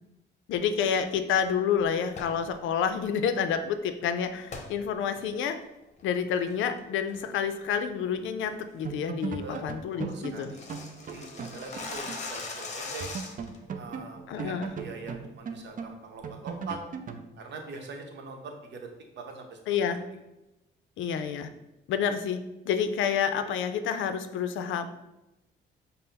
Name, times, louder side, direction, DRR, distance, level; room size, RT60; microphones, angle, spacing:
voice 1, 0.5-5.6 6.0-10.5 14.3-14.8 19.7-20.0 21.0-21.5 21.9-22.4 22.6-24.9, left 7 dB, 75° left, 9 dB, 0.5 m, -29 dB
sound 1, 2.1-2.4 4.5-4.7 5.2-5.3 5.8-6.1 6.5-6.8 7.1-7.4 7.8-7.9 8.3-8.5 8.9-9.0 9.3-9.4 9.6-9.7 9.9-13.6, left 3 dB, 35° left, 0.7 m, -40 dB
sound 2, 8.4-8.6 8.8-12.3 12.5-12.6 13.0-17.3, right 5 dB, 40° right, 0.4 m, -38 dB
voice 2, 9.9-13.1 13.8-16.8 17.4-18.9 19.1-19.6 19.9-20.0, right 4 dB, 65° right, 3 dB, 0.8 m, -43 dB
5.5 x 2.1 x 4.0 m, 0.97 s
cardioid pair, 90°, 20 cm